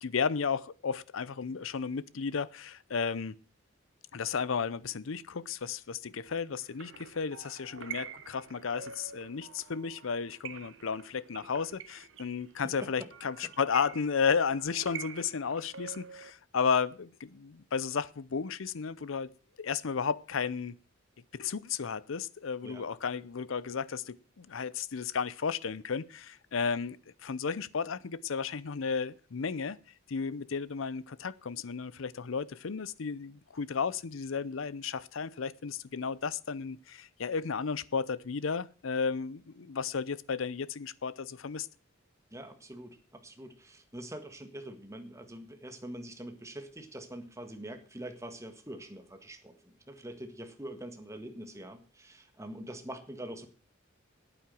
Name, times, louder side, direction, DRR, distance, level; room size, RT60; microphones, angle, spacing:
voice 1, 0.0-3.3 4.1-19.3 19.6-20.7 21.3-27.0 27.2-29.8 30.1-41.7, left 5 dB, 70° left, 0.6 m, -33 dB
sound 1, 6.6-16.3, right 7 dB, 65° right, 1.1 m, -47 dB
voice 2, 12.6-13.1 22.6-22.9 42.3-53.5, right 1 dB, 15° right, 1.6 m, -44 dB
9.4 x 8.8 x 7.5 m
head